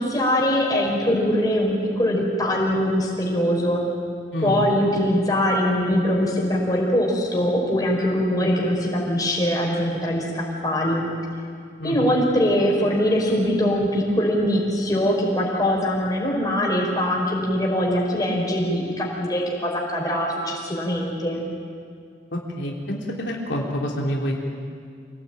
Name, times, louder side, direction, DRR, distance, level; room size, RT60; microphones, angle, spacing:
voice 1, 0.0-3.8 4.4-11.1 11.8-21.4, equal, 20° left, -2 dB, 5.0 m, -22 dB
voice 2, 4.3-4.6 8.4-8.5 11.8-12.1 22.3-24.4, equal, 80° left, -1 dB, 3.3 m, -27 dB
26.5 x 17.5 x 9.1 m, 2.2 s
head